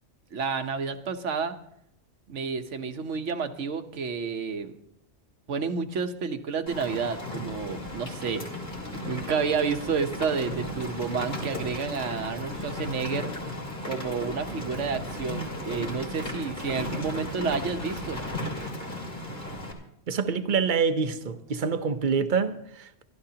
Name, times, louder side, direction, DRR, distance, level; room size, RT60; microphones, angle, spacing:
voice 1, 0.3-1.6 2.3-4.7 5.5-8.4 9.0-13.4 13.8-18.2, right 5 dB, 80° right, 1.3 m, -30 dB
Rain, 6.7-19.7, left 1 dB, 40° left, 2.7 m, -35 dB
voice 2, 20.1-23.0, right 5 dB, 45° right, 0.9 m, -26 dB
26.0 x 11.5 x 2.9 m
omnidirectional pair, 1.2 m